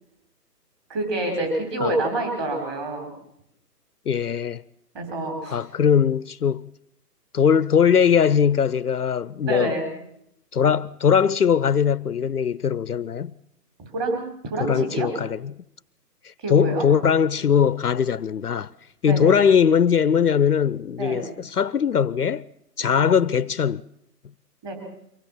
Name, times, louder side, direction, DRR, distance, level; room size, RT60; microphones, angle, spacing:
voice 1, 0.9-3.1 4.9-5.6 9.5-9.9 13.8-15.1 16.4-16.9 19.0-19.4 21.0-21.2 22.8-23.2 24.6-24.7, right 2 dB, 15° right, 4.6 m, -27 dB
voice 2, 4.1-4.6 5.5-6.7 7.3-9.7 10.5-13.3 14.7-15.4 16.2-18.7 19.0-22.4 22.8-23.8, left 7 dB, 65° left, 0.7 m, -20 dB
24.0 x 17.5 x 7.5 m
hypercardioid pair, 165°, 49 cm